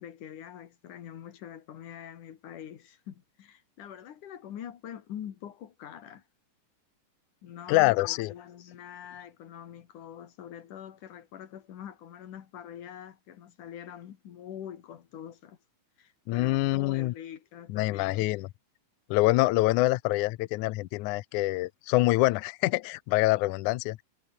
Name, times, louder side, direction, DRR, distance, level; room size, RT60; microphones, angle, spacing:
voice 1, 0.0-6.2 7.4-15.6 16.0-18.3, left 10 dB, 60° left, 3.1 m, -44 dB
voice 2, 7.7-8.3 16.3-17.1 17.7-18.5 19.1-24.0, left 19 dB, 80° left, 1.8 m, -25 dB
omnidirectional pair, 4.4 m